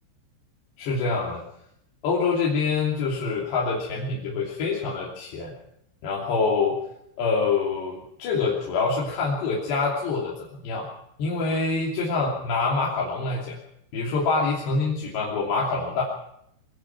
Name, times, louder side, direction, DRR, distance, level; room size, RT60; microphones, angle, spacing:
voice 1, 0.8-1.4 2.0-5.5 6.0-6.8 7.2-10.9 11.2-13.6 13.9-16.0, left 4 dB, 60° left, -4 dB, 4.9 m, -25 dB
24.5 x 17.5 x 6.0 m, 0.75 s
omnidirectional pair, 5.7 m